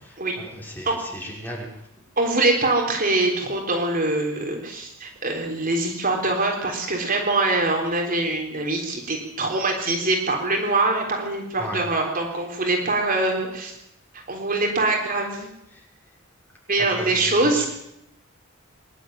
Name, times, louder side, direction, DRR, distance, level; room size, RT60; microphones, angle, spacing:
voice 1, 0.0-1.6 11.6-11.8 15.7-15.8 16.8-17.7, equal, 10° left, -2 dB, 6.1 m, -36 dB
voice 2, 2.2-13.7 14.3-15.5 16.7-17.7, right 2 dB, 40° right, 1 dB, 3.9 m, -23 dB
24.0 x 12.0 x 9.2 m, 0.79 s
head